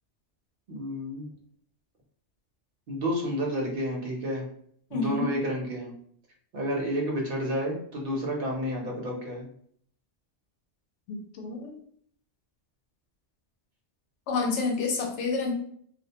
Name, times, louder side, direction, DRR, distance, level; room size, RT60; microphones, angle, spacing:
voice 1, 0.7-1.3 2.9-4.4 4.9-5.9 6.5-9.5, equal, 55° right, -1 dB, 0.9 m, -30 dB
voice 2, 4.9-5.3 11.1-11.7 14.3-15.5, left 4 dB, 85° left, 1 dB, 0.9 m, -29 dB
2.3 x 2.1 x 2.7 m, 0.63 s
omnidirectional pair, 1.2 m